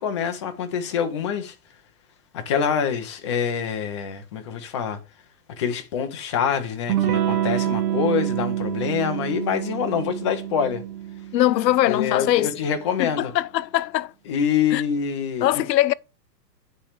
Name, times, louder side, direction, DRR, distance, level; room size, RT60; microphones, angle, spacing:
voice 1, 0.0-1.5 2.3-5.0 5.6-10.8 11.9-13.3 14.3-15.6, left 7 dB, 20° left, 0.4 m, -25 dB
Electric guitar / Strum, 6.9-12.3, right 11 dB, 65° right, 1.3 m, -27 dB
voice 2, 11.3-12.5 13.0-14.1 14.7-14.8 15.4-15.9, left 14 dB, 80° left, 0.6 m, -21 dB
8.9 x 3.3 x 6.5 m
hypercardioid pair, 150°, 50 cm